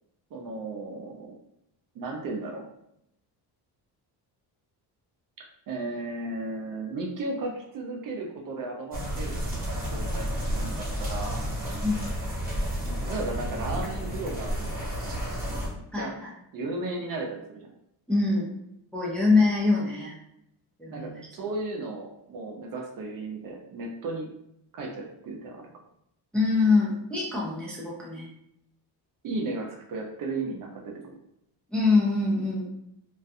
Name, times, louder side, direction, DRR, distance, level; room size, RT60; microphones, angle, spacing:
voice 1, 0.3-1.4 1.9-2.6 5.7-11.5 12.8-14.6 15.0-15.2 15.7-16.1 16.5-17.7 20.9-24.3 24.7-25.7 29.2-31.1, right 2 dB, 50° right, 0 dB, 0.6 m, -35 dB
sound 1, 8.9-15.7, equal, 20° right, 1.0 m, -31 dB
voice 2, 15.9-16.3 18.1-18.5 18.9-20.2 20.8-21.2 26.3-28.3 31.7-32.7, left 3 dB, ahead, -5 dB, 0.5 m, -24 dB
2.4 x 2.3 x 2.6 m, 0.78 s
cardioid pair, 140°, 42 cm